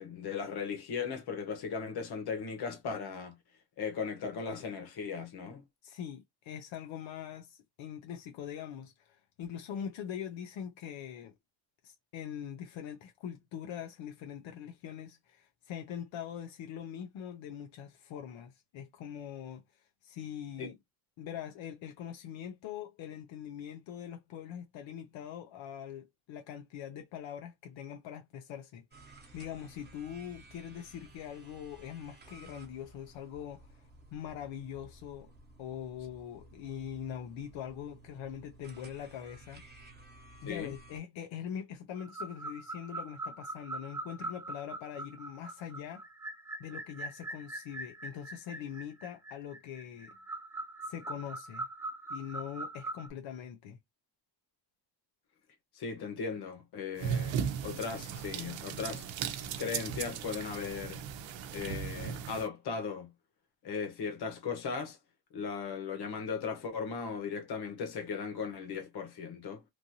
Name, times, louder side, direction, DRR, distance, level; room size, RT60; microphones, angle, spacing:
voice 1, 0.0-3.4 3.8-5.6 20.6-20.7 40.4-40.7 55.7-59.1 59.6-61.0 61.5-63.1 63.6-65.0 65.3-69.6, left 5 dB, 55° left, 1.1 m, -37 dB
voice 2, 5.8-11.3 11.8-20.8 21.2-33.7 34.1-35.3 35.6-39.6 40.4-46.1 46.6-50.2 50.9-51.7 52.1-53.8, left 9 dB, 80° left, 0.8 m, -43 dB
sound 1, 28.9-41.0, right 2 dB, 20° right, 1.0 m, -56 dB
sound 2, 42.0-53.1, right 2 dB, 5° right, 0.4 m, -42 dB
sound 3, 57.0-62.5, right 8 dB, 75° right, 0.7 m, -37 dB
3.1 x 2.6 x 2.7 m
cardioid pair, 135°, 46 cm